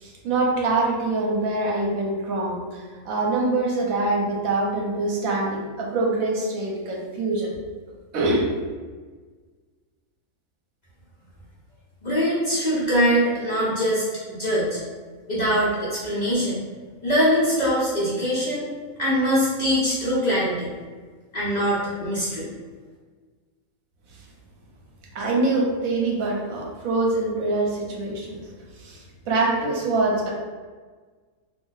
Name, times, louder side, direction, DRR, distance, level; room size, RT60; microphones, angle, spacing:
voice 1, 0.0-7.5 8.1-8.4 25.1-28.4 28.8-30.3, right 2 dB, 80° right, -2 dB, 1.1 m, -24 dB
voice 2, 12.0-14.8 15.3-16.6 17.0-18.6 19.0-20.7 21.3-22.5, equal, 40° left, -9 dB, 0.7 m, -23 dB
2.5 x 2.0 x 3.8 m, 1.4 s
omnidirectional pair, 1.5 m